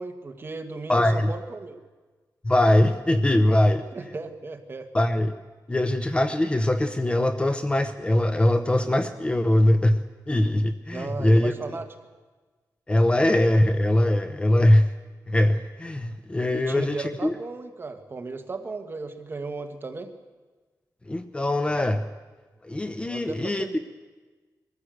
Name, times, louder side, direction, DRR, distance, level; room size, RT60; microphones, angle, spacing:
voice 1, 0.0-1.8 3.9-4.9 10.9-11.9 16.5-20.1 23.0-23.8, right 3 dB, 35° right, 5 dB, 1.8 m, -35 dB
voice 2, 0.9-1.3 2.4-3.8 4.9-5.3 5.7-11.5 12.9-14.9 15.3-17.3 21.1-22.0 22.6-23.6, left 1 dB, 15° left, 9 dB, 0.8 m, -22 dB
22.0 x 15.0 x 7.9 m, 1.3 s
wide cardioid pair, 130°, 7 cm